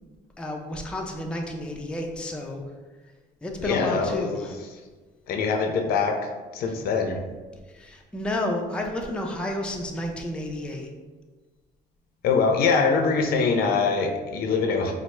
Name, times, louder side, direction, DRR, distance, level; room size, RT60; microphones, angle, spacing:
voice 1, 0.4-2.6 3.4-4.6 7.7-10.9, left 1 dB, 5° left, 1 dB, 0.4 m, -31 dB
voice 2, 3.6-4.5 5.3-7.2 12.2-14.9, left 4 dB, 65° left, 4 dB, 0.5 m, -23 dB
4.3 x 2.0 x 3.1 m, 1.3 s
cardioid pair, 110°, 17 cm